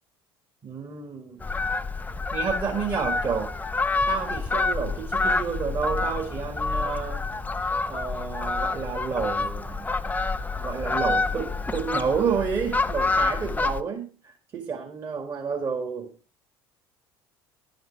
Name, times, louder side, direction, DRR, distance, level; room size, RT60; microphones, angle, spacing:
voice 1, 0.6-1.4 2.3-3.5 4.1-7.2 7.9-10.0 10.6-16.1, right 6 dB, 30° right, 1 dB, 2.2 m, -30 dB
Fowl, 1.4-13.8, left 3 dB, 10° left, 0.7 m, -28 dB
12.0 x 8.1 x 4.7 m, 0.35 s
figure-of-eight pair, 60°, 13 cm